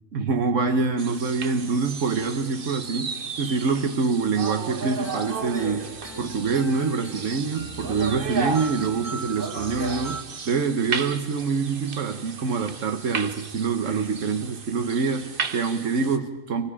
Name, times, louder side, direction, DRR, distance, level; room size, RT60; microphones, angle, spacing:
voice 1, 0.1-16.7, right 4 dB, 90° right, 7 dB, 1.6 m, -25 dB
sound 1, 1.0-16.2, right 4 dB, 50° right, 1.2 m, -34 dB
sound 2, 5.0-10.2, right 2 dB, 20° left, 3.0 m, -39 dB
28.5 x 24.0 x 5.0 m, 0.89 s
omnidirectional pair, 1.3 m